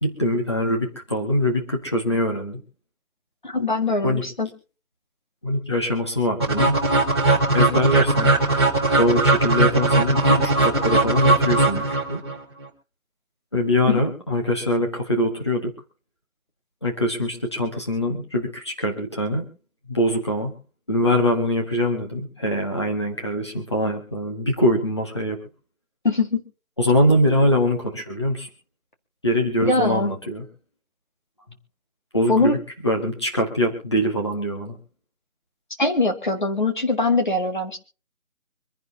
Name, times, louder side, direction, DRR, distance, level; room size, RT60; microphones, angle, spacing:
voice 1, 0.0-2.6 4.0-4.2 5.4-6.8 7.5-8.4 8.8-12.2 13.5-15.7 16.8-19.4 19.9-20.5 20.9-25.4 26.8-28.5 29.2-30.4 32.1-32.6 32.8-34.8, left 1 dB, 20° left, 1 dB, 1.8 m, -23 dB
voice 2, 3.4-4.5 13.9-14.1 26.0-26.4 29.6-30.1 32.3-32.6 35.8-37.8, left 3 dB, 35° left, 4 dB, 1.9 m, -22 dB
sound 1, 6.4-12.4, right 2 dB, 20° right, 2.0 m, -19 dB
25.5 x 10.5 x 2.9 m, 0.35 s
figure-of-eight pair, 180°, 41 cm